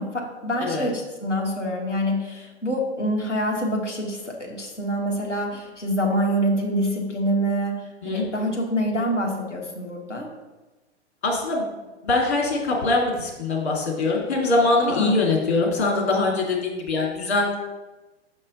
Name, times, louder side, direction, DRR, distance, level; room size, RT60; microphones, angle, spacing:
voice 1, 0.0-7.8 8.0-10.3 14.8-15.2, equal, 90° left, -1 dB, 1.5 m, -26 dB
voice 2, 11.2-11.7 12.0-17.6, left 3 dB, 65° left, -2 dB, 2.2 m, -23 dB
5.9 x 5.4 x 4.1 m, 1.1 s
figure-of-eight pair, 110°, 35 cm